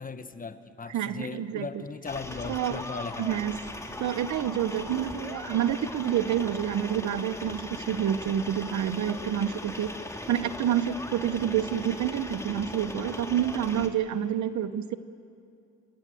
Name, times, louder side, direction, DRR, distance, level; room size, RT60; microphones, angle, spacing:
voice 1, 0.0-3.4, left 4 dB, 30° left, 11 dB, 1.2 m, -38 dB
voice 2, 0.9-1.8 2.4-2.8 3.2-3.6 4.0-9.9 10.3-15.0, right 10 dB, 70° right, 14 dB, 1.0 m, -28 dB
sound 1, 2.1-13.9, left 1 dB, 10° left, 2.1 m, -39 dB
26.0 x 22.0 x 7.7 m, 2.5 s
cardioid pair, 90°, 30 cm